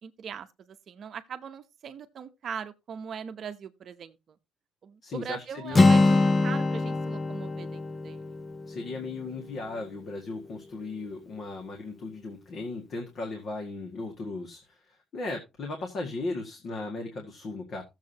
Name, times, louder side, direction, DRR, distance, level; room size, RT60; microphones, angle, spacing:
voice 1, 0.0-4.4 4.8-8.4, right 7 dB, 40° right, 0.8 m, -41 dB
voice 2, 5.0-6.0 8.7-17.8, left 3 dB, 45° left, 1.9 m, -37 dB
Acoustic guitar, 5.7-9.7, left 3 dB, 20° left, 0.6 m, -24 dB
15.5 x 7.4 x 2.8 m
cardioid pair, 150°, 0 cm